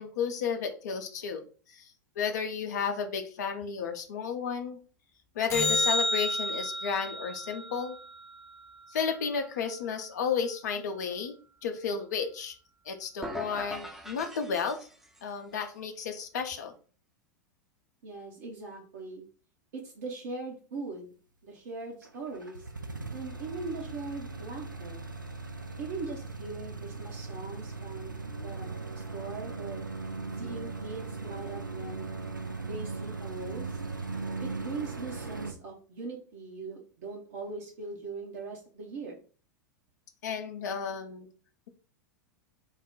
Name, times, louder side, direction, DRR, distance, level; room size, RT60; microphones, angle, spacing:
voice 1, 0.0-1.4 1.7-4.8 5.4-7.9 8.9-11.4 11.6-12.5 12.9-14.9 15.2-16.7 40.2-41.3, left 6 dB, 60° left, 6 dB, 0.5 m, -32 dB
sound 1, 5.5-10.0 16.5-16.6, left 2 dB, 25° left, 0.8 m, -32 dB
sound 2, 13.2-15.3, left 1 dB, 5° right, 0.5 m, -40 dB
voice 2, 18.0-19.2 19.7-21.1 21.4-22.7 23.1-25.0 25.8-29.8 30.4-32.1 32.6-33.8 34.4-39.2, right 3 dB, 55° right, -1 dB, 0.8 m, -40 dB
sound 3, 22.0-35.5, right 3 dB, 90° right, 0.4 m, -38 dB
3.9 x 2.1 x 3.7 m, 0.40 s
figure-of-eight pair, 90°, 10 cm